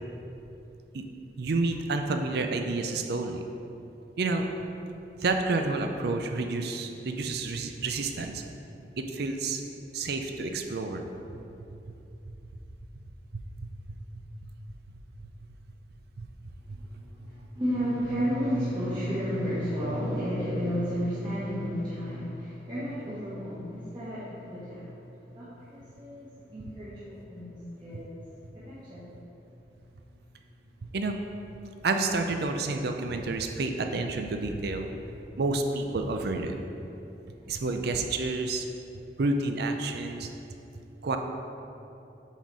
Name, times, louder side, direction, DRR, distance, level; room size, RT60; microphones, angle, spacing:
voice 1, 1.4-3.4 4.2-4.5 5.2-8.4 9.0-9.6 9.9-11.0 11.3-11.4 13.3-14.0 16.2-16.3 16.7-16.8 30.9-31.2 31.8-34.9 35.4-36.5 37.5-38.6 39.2-40.3 41.0-41.2, right 3 dB, 65° right, 5 dB, 0.5 m, -29 dB
voice 2, 16.7-24.9 25.1-28.1 28.5-29.0 37.4-37.5, equal, 25° right, -12 dB, 1.4 m, -32 dB
8.1 x 4.0 x 4.8 m, 2.8 s
head